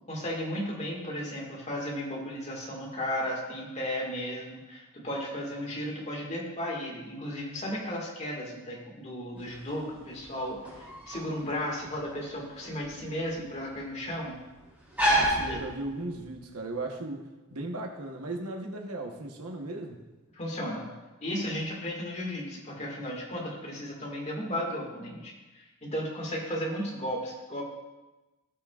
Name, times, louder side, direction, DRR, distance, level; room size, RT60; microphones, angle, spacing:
voice 1, 0.1-14.3 15.5-15.6 20.3-20.9 21.2-27.6, equal, 30° left, -2 dB, 1.9 m, -35 dB
sound 1, 9.4-16.3, right 1 dB, 5° right, 2.5 m, -32 dB
voice 2, 15.1-20.0, right 2 dB, 90° right, 3 dB, 1.2 m, -37 dB
17.0 x 6.0 x 2.5 m, 1.1 s
head